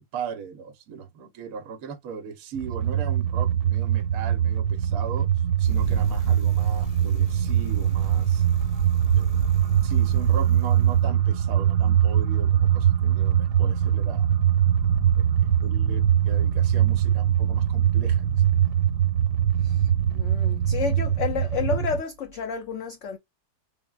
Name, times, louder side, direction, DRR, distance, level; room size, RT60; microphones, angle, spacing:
voice 1, 0.0-5.3 5.6-8.4 9.1-9.4 9.8-14.3 15.2-18.4, right 7 dB, 65° right, 1.1 m, -38 dB
sound 1, 2.5-22.0, right 10 dB, 90° right, 1.3 m, -22 dB
Bicycle, 5.6-11.0, right 4 dB, 85° left, 1.7 m, -34 dB
voice 2, 19.6-23.2, left 6 dB, 70° left, 0.7 m, -31 dB
3.6 x 2.1 x 2.3 m
omnidirectional pair, 1.8 m